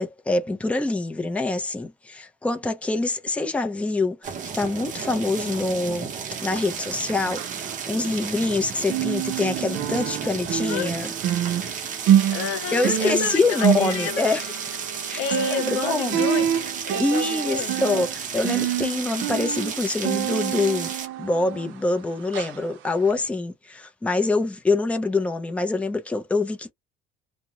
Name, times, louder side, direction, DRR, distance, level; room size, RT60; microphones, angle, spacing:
voice 1, 0.0-6.1 6.4-11.1 11.6-11.7 12.7-14.5 15.1-15.2 15.7-16.2 17.0-20.9 21.2-26.7, left 3 dB, 5° left, 0.5 m, -25 dB
sound 1, 4.2-21.1, right 7 dB, 35° right, 0.8 m, -33 dB
sound 2, 6.4-8.6 8.8-22.0 22.3-22.6 23.0-23.1, right 10 dB, 65° right, 0.6 m, -27 dB
voice 2, 12.3-14.4 14.9-16.5 16.8-17.7, left 8 dB, 90° left, 0.6 m, -30 dB
2.4 x 2.1 x 2.9 m
cardioid pair, 140°, 21 cm